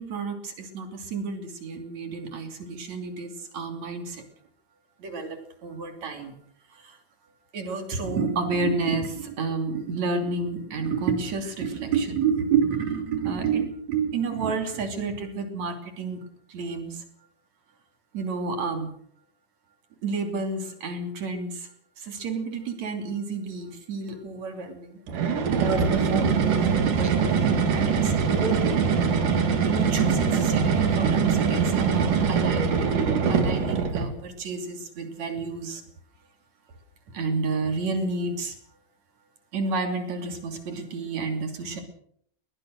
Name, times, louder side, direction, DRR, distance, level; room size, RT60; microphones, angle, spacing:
voice 1, 0.0-4.2 5.0-6.4 6.7-7.0 7.5-16.2 16.5-17.0 18.1-18.9 20.0-21.7 22.0-25.0 25.6-26.7 27.0-28.6 29.6-33.0 33.3-35.8 37.1-38.5 39.5-41.8, right 4 dB, 60° right, 6 dB, 4.1 m, -30 dB
sound 1, 25.1-34.2, right 6 dB, 85° right, 3.9 m, -23 dB
22.0 x 19.0 x 6.5 m, 0.66 s
omnidirectional pair, 3.6 m